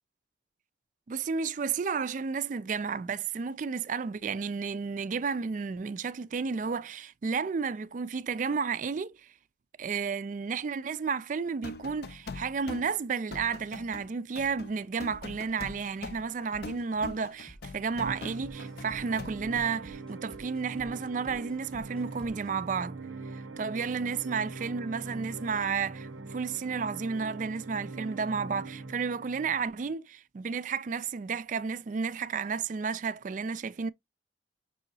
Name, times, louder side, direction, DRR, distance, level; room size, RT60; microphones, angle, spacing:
voice 1, 1.1-9.3 9.8-23.0 23.3-33.9, right 5 dB, 40° right, 0.3 m, -32 dB
sound 1, 11.5-19.6, left 3 dB, 55° left, 0.5 m, -43 dB
sound 2, 15.1-22.7, equal, 5° left, 0.9 m, -53 dB
sound 3, 18.0-29.9, right 3 dB, 85° right, 0.7 m, -42 dB
6.1 x 2.8 x 2.7 m
head